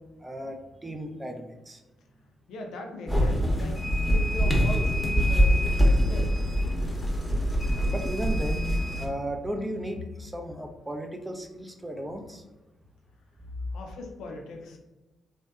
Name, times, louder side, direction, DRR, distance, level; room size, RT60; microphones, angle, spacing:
voice 1, 0.2-1.8 7.9-12.4, equal, 15° right, 4 dB, 0.3 m, -35 dB
voice 2, 2.5-3.8 4.1-6.4 13.7-14.8, left 2 dB, 75° left, 2 dB, 0.3 m, -39 dB
sound 1, 3.1-9.1, equal, 15° left, 0.7 m, -24 dB
2.6 x 2.1 x 2.2 m, 1.1 s
hypercardioid pair, 45°, 0 cm